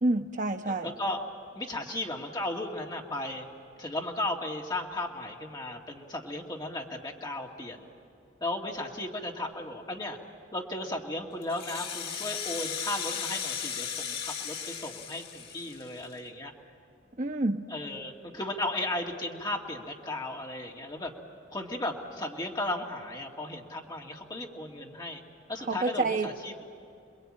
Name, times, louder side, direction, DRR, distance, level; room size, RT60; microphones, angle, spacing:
voice 1, 0.0-0.9 17.2-17.7 25.7-26.3, right 2 dB, 40° right, 5 dB, 1.0 m, -28 dB
voice 2, 0.6-1.2 1.5-3.5 3.8-7.9 8.4-10.2 10.5-16.5 17.7-21.1 21.5-25.2 25.5-26.6, left 1 dB, 20° left, 0 dB, 2.3 m, -35 dB
Rattle (instrument), 11.4-16.2, left 7 dB, 55° left, 1.9 m, -36 dB
28.0 x 21.5 x 8.8 m, 2.5 s
head